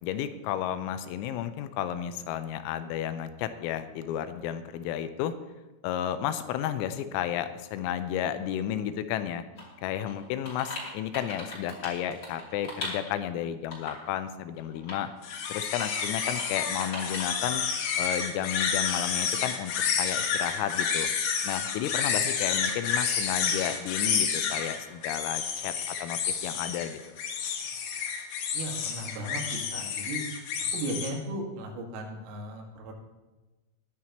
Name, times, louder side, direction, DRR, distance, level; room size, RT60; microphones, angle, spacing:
voice 1, 0.0-5.3 5.8-9.4 9.8-15.1 15.5-17.6 18.0-19.7 20.0-21.1 21.4-27.0, left 10 dB, 85° left, 10 dB, 3.4 m, -32 dB
sound 1, 9.6-9.7 10.0-13.2 13.7-14.1 14.6-15.0 15.3-15.4 15.8-16.5 16.7-17.3, left 2 dB, 30° left, 2.8 m, -39 dB
sound 2, 15.2-31.1, left 7 dB, 70° left, 3.1 m, -30 dB
voice 2, 28.5-29.4 29.7-30.2 30.7-32.9, right 1 dB, 80° right, 0 dB, 4.4 m, -36 dB
20.5 x 10.0 x 3.0 m, 1.1 s
omnidirectional pair, 5.9 m